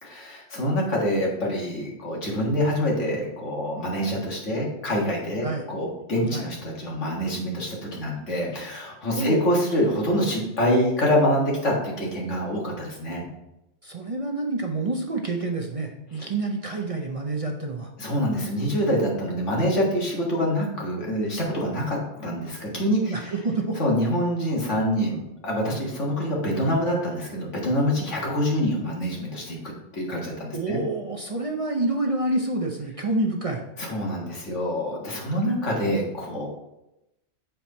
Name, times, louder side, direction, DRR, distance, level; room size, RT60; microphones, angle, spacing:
voice 1, 0.0-13.2 18.0-23.3 23.8-29.6 29.9-30.8 33.8-36.5, equal, 85° left, -2 dB, 2.1 m, -26 dB
voice 2, 9.1-9.5 13.8-17.9 23.1-23.8 30.5-33.6, right 2 dB, 35° right, 1 dB, 0.6 m, -28 dB
7.5 x 4.4 x 4.1 m, 0.90 s
omnidirectional pair, 1.2 m